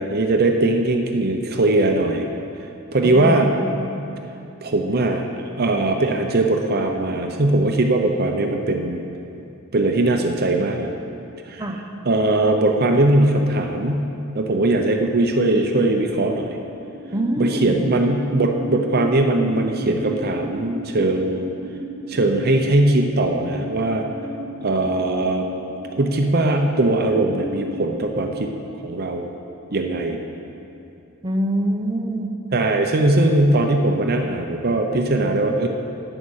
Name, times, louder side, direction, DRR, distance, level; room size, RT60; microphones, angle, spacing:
voice 1, 0.0-2.3 2.9-3.5 4.6-5.3 5.6-9.0 9.7-10.9 11.5-11.6 12.1-14.0 14.3-16.6 17.4-21.5 22.1-24.1 24.6-25.5 25.9-28.5 28.8-29.3 29.7-30.2 32.5-35.7, right 2 dB, 45° right, 4 dB, 0.7 m, -20 dB
voice 2, 3.0-3.7 11.6-11.8 17.1-17.9 31.2-32.3, right 1 dB, 20° right, 1 dB, 0.8 m, -25 dB
sound 1, 16.4-28.0, equal, 70° right, 1.2 m, -35 dB
9.9 x 9.4 x 6.4 m, 2.7 s
head